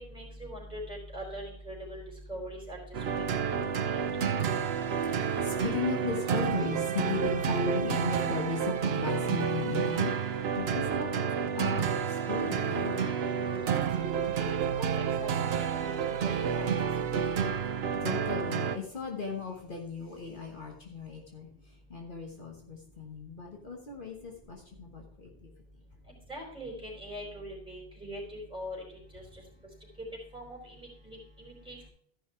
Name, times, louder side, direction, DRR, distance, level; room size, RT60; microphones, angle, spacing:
voice 1, 0.0-2.0 2.3-2.8 3.1-3.3 3.8-4.0 13.7-14.9 15.2-17.1 26.3-28.8 29.1-29.4 30.3-31.9, equal, 5° right, -2 dB, 4.1 m, -42 dB
sound 1, 2.9-18.8, right 7 dB, 80° right, 1.0 m, -30 dB
voice 2, 4.9-10.1 10.5-11.2 11.5-13.3 18.0-21.5 21.9-25.5, left 4 dB, 55° left, 0 dB, 1.5 m, -36 dB
14.0 x 5.7 x 4.5 m, 0.63 s
omnidirectional pair, 1.0 m